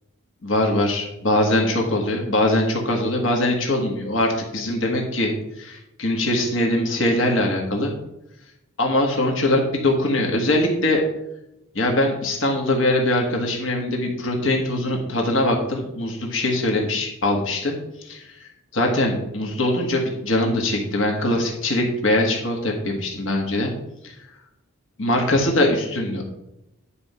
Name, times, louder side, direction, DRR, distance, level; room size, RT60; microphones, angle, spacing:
voice 1, 0.4-7.9 8.8-11.0 11.7-18.3 18.7-23.7 24.0-24.1 25.0-26.2, left 1 dB, 60° left, 1 dB, 1.4 m, -22 dB
9.9 x 4.4 x 5.5 m, 0.86 s
head